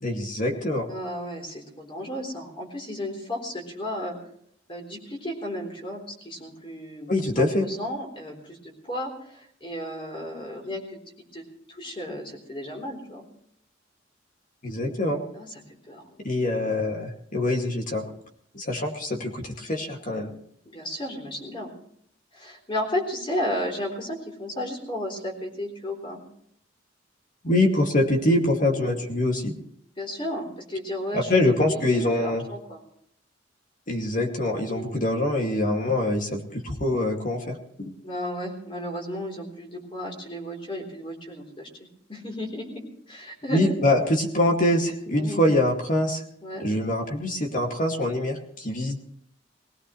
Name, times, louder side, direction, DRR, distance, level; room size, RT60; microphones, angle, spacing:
voice 1, 0.0-0.9 7.1-7.6 14.6-15.2 16.2-18.0 18.5-20.3 27.4-29.6 31.1-32.4 33.9-37.9 43.5-46.2 46.6-49.0, left 1 dB, 45° left, 2 dB, 2.2 m, -24 dB
voice 2, 0.9-4.1 4.7-11.0 11.3-13.2 15.3-15.6 15.9-16.2 20.6-21.7 22.3-26.2 28.7-28.9 30.0-32.8 34.7-35.0 38.0-41.7 42.1-43.7 45.1-45.4 46.4-46.7, left 1 dB, 30° left, 1 dB, 3.7 m, -34 dB
20.5 x 17.5 x 3.2 m, 0.68 s
head